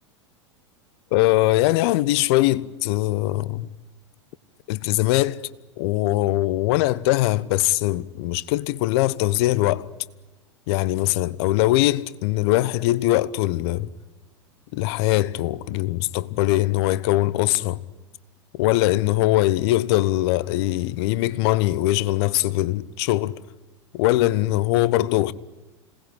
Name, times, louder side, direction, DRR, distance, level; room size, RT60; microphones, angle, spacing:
voice 1, 1.1-3.7 4.7-5.4 5.8-9.9 10.7-13.9 14.7-17.8 18.6-23.4 23.9-25.3, left 17 dB, 55° left, 1.1 m, -21 dB
26.5 x 19.5 x 10.0 m
hypercardioid pair, 90°, 16 cm